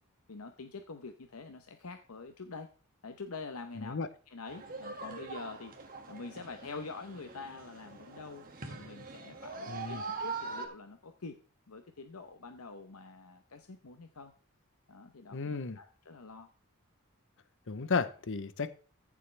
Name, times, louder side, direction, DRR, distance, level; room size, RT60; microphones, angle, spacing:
voice 1, 0.3-2.7 3.0-4.0 4.3-11.4 11.7-14.3 14.9-16.5, left 4 dB, 90° left, 7 dB, 0.9 m, -46 dB
voice 2, 3.8-4.1 9.7-10.0 15.3-15.8 17.7-18.7, left 4 dB, 60° left, 13 dB, 0.7 m, -34 dB
sound 1, 4.5-10.7, right 4 dB, 40° right, 1.9 m, -43 dB
15.0 x 7.4 x 3.3 m, 0.38 s
head